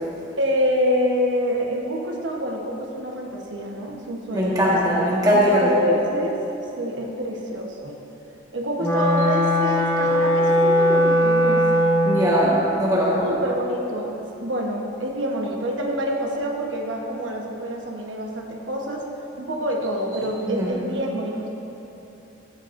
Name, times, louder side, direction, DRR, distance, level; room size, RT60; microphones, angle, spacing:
voice 1, 0.4-6.4 6.8-8.0 8.5-11.6 13.2-19.0 19.3-21.5, equal, 85° right, 1 dB, 1.1 m, -27 dB
voice 2, 4.3-5.9 12.0-13.2 20.4-20.7, equal, 20° right, -7 dB, 1.5 m, -20 dB
Wind instrument woodwind instrument, 8.8-12.2, equal, 15° left, 1.3 m, -19 dB
15.0 x 7.8 x 2.6 m, 3.0 s
head